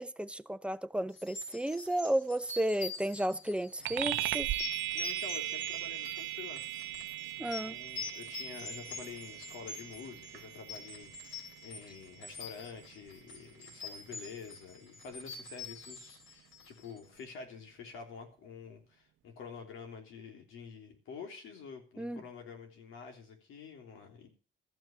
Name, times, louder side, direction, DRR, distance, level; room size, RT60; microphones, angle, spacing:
voice 1, 0.0-4.5 7.4-7.7 22.0-22.2, right 1 dB, 5° right, 0.7 m, -33 dB
sound 1, 1.1-17.0, left 4 dB, 75° left, 3.8 m, -45 dB
sound 2, 3.8-13.7, right 15 dB, 80° right, 0.6 m, -39 dB
voice 2, 4.9-6.7 7.4-24.3, left 5 dB, 90° left, 3.3 m, -48 dB
13.5 x 5.9 x 8.6 m
cardioid pair, 90°, 20 cm